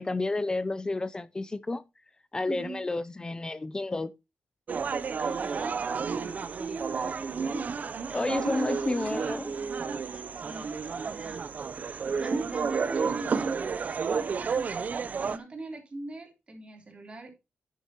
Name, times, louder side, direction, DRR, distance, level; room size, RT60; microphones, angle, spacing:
voice 1, 0.0-1.8 2.3-4.1 8.1-9.5, left 2 dB, 20° left, 0.5 m, -31 dB
voice 2, 2.5-2.8 5.2-7.8 8.5-8.6 10.1-11.4 12.2-14.9 15.2-17.3, right 3 dB, 30° right, 3.6 m, -40 dB
sound 1, 4.7-15.4, right 5 dB, 45° right, 0.7 m, -31 dB
10.0 x 8.4 x 3.0 m
wide cardioid pair, 125°, 4 cm